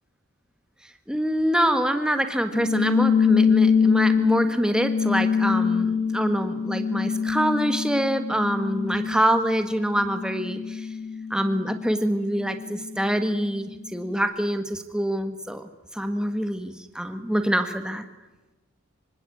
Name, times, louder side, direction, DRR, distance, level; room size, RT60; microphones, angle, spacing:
voice 1, 1.1-10.9 11.3-15.6 15.9-18.0, equal, 5° right, 8 dB, 1.6 m, -25 dB
sound 1, 2.5-13.4, left 6 dB, 30° left, 4.8 m, -25 dB
25.0 x 24.5 x 8.6 m, 1.1 s
head